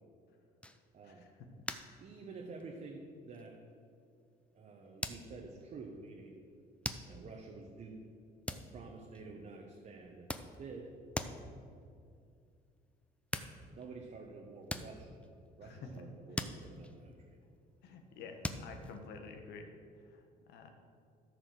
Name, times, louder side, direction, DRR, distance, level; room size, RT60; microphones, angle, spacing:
sound 1, 0.6-1.1 1.7-2.1 2.3-2.8 3.3-3.5 5.0-5.7 6.8-7.4 8.5-9.4 10.0-10.9 11.1-11.6 12.9-13.0 13.3-14.1 14.6-16.0 16.4-17.6 18.4-19.1, left 1 dB, 5° left, 0.6 m, -42 dB
voice 1, 0.9-1.3 2.0-3.6 4.5-6.4 7.0-8.1 8.5-10.9 13.7-15.2 15.6-17.4, right 4 dB, 45° right, 1 dB, 1.1 m, -49 dB
voice 2, 17.8-19.7 19.9-20.7, left 5 dB, 75° left, 4 dB, 1.3 m, -50 dB
13.0 x 5.0 x 6.5 m, 2.4 s
cardioid pair, 110°, 17 cm